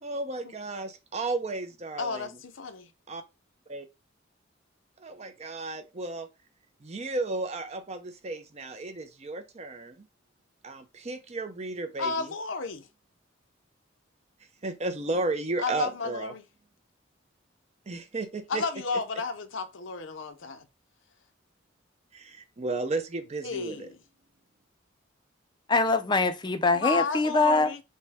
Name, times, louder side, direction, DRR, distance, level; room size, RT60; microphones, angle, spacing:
voice 1, 0.0-2.3 3.1-3.2 3.7-3.9 5.0-6.3 6.8-10.1 10.6-12.3 14.6-16.3 17.9-18.6 22.1-23.9, right 2 dB, 35° right, 0.6 m, -33 dB
voice 2, 2.0-2.9 12.0-12.9 15.6-16.4 18.5-20.6 23.4-24.0 26.8-27.8, left 4 dB, 70° left, 0.6 m, -32 dB
voice 3, 25.7-27.7, left 3 dB, 25° left, 0.5 m, -23 dB
5.4 x 2.2 x 3.4 m
head